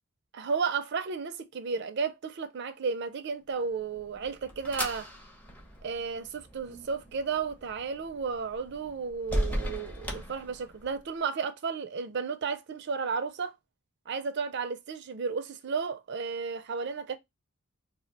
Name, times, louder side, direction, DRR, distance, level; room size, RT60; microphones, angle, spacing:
voice 1, 0.3-5.1 5.8-13.5 14.1-17.2, right 5 dB, 55° right, 0.4 m, -33 dB
sound 1, 3.7-11.1, equal, 10° left, 0.6 m, -38 dB
2.4 x 2.1 x 3.9 m
head